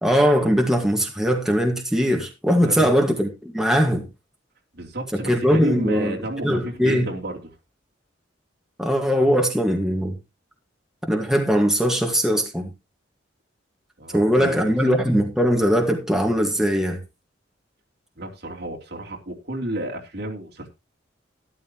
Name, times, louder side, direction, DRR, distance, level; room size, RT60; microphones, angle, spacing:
voice 1, 0.0-4.0 5.1-6.1 6.4-7.1 8.8-10.1 11.0-12.7 14.1-17.0, equal, 5° right, 1.7 m, -20 dB
voice 2, 2.6-2.9 4.7-7.5 14.0-14.7 18.2-20.7, right 1 dB, 60° right, 3.2 m, -31 dB
13.0 x 12.0 x 3.0 m
head